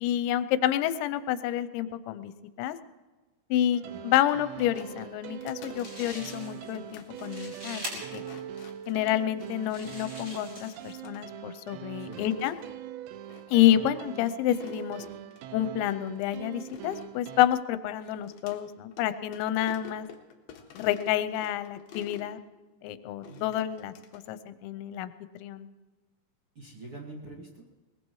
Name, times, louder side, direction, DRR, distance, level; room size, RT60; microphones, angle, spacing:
voice 1, 0.0-2.3 2.6-2.8 3.5-7.8 8.1-8.2 8.9-12.6 13.5-15.1 15.5-20.1 20.8-22.4 22.8-25.1 25.4-25.7, left 12 dB, 85° left, 14 dB, 3.0 m, -28 dB
sound 1, 3.7-17.5, right 11 dB, 80° right, 2.8 m, -43 dB
sound 2, 4.6-10.2 10.6-11.2 11.9-12.7 13.3-13.6 13.8-13.9 14.5-15.4 15.9-18.6 18.9-19.1 19.3-22.3 23.2-24.3, left 7 dB, 65° left, 2.6 m, -50 dB
sound 3, 5.4-5.5 5.8-6.7 7.0-7.9 8.7-8.8 9.5-11.0, equal, 20° right, 5.1 m, -42 dB
voice 2, 23.3-23.6 26.6-27.6, right 2 dB, 45° right, -3 dB, 1.9 m, -45 dB
22.0 x 20.5 x 3.1 m, 1.3 s
omnidirectional pair, 5.2 m